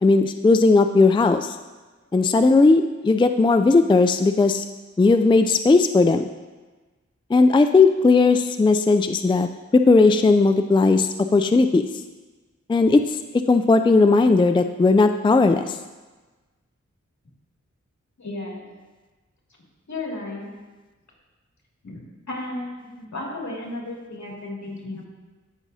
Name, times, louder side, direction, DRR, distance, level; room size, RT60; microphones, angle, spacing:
voice 1, 0.0-1.6 2.1-4.7 5.0-6.3 7.3-11.8 12.7-13.2 13.5-15.8, left 3 dB, 15° left, 8 dB, 0.3 m, -17 dB
voice 2, 18.2-18.6 19.9-20.5 21.8-22.0 22.3-25.1, left 2 dB, 65° left, -3 dB, 2.4 m, -33 dB
15.5 x 6.1 x 2.7 m, 1.3 s
cardioid pair, 45°, 30 cm